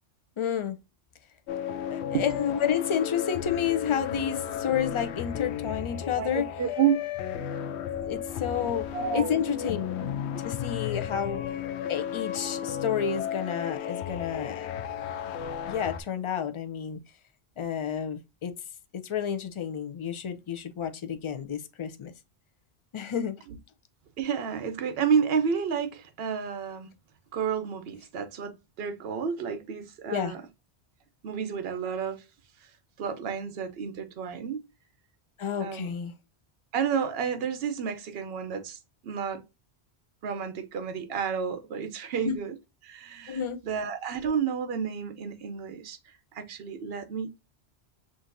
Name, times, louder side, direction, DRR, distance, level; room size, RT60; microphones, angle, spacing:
voice 1, 0.4-0.8 1.9-6.5 8.0-8.9 9.1-9.9 10.4-11.4 11.9-14.7 15.2-15.3 15.7-17.0 17.6-18.5 18.9-22.1 22.9-23.4 30.1-30.3 35.4-36.1 42.2-42.4 43.3-43.6, left 8 dB, 45° left, 0.4 m, -30 dB
sound 1, 1.5-16.0, left 9 dB, 85° left, 0.9 m, -34 dB
voice 2, 6.2-6.9 8.9-9.3 23.5-23.6 24.2-26.9 27.3-30.4 31.2-32.2 33.0-34.6 35.6-35.9 36.7-38.8 39.0-39.4 40.2-42.6 42.8-46.0 46.3-47.4, right 7 dB, 70° right, 0.9 m, -30 dB
6.0 x 2.6 x 2.5 m
omnidirectional pair, 1.1 m